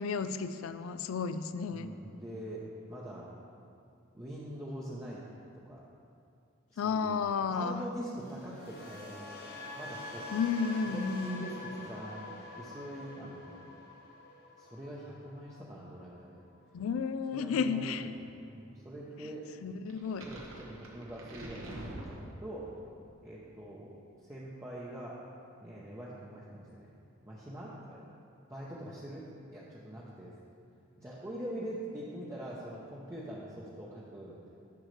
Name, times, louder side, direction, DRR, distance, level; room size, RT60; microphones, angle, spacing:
voice 1, 0.0-1.9 6.8-7.8 10.3-11.5 16.7-18.1 19.2-19.3 19.6-20.3, left 5 dB, 75° left, 12 dB, 0.3 m, -32 dB
voice 2, 1.7-2.6 2.9-3.3 4.1-5.2 5.6-5.8 6.7-7.2 7.5-9.2 9.8-10.3 10.9-13.6 14.6-16.4 17.3-19.4 20.2-22.7 23.2-25.2 25.6-26.9 27.2-28.0 28.5-30.3 31.0-34.4, right 1 dB, 15° right, -7 dB, 0.7 m, -44 dB
sound 1, 8.2-16.3 16.5-16.9, left 2 dB, 50° left, 1.3 m, -46 dB
sound 2, 19.9-22.8, right 1 dB, 70° right, 1.2 m, -45 dB
10.5 x 6.4 x 3.2 m, 2.4 s
head